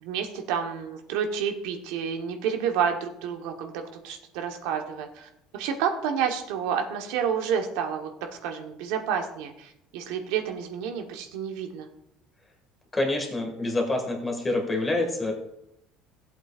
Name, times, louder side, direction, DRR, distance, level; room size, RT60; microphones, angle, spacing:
voice 1, 0.0-11.9, right 7 dB, 85° right, 4 dB, 1.1 m, -30 dB
voice 2, 12.9-15.3, left 2 dB, 15° left, 2 dB, 1.9 m, -27 dB
16.0 x 7.8 x 2.4 m, 0.79 s
cardioid pair, 150°, 0 cm